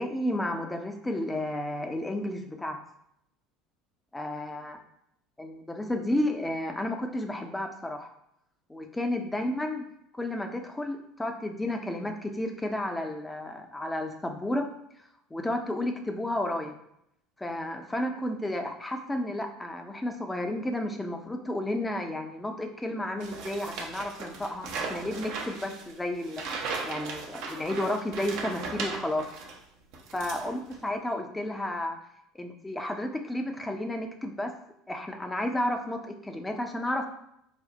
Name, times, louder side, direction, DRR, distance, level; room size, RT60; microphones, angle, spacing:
voice 1, 0.0-2.8 4.1-4.8 5.4-8.1 8.7-9.9 10.1-14.7 15.3-16.7 17.4-29.3 30.1-32.0 32.4-34.5 34.9-37.1, left 1 dB, 10° left, 4 dB, 0.6 m, -32 dB
sound 1, 23.2-29.6 29.9-30.9, right 4 dB, 60° right, 0.7 m, -37 dB
4.2 x 2.1 x 3.9 m, 0.76 s
hypercardioid pair, 70°, 0 cm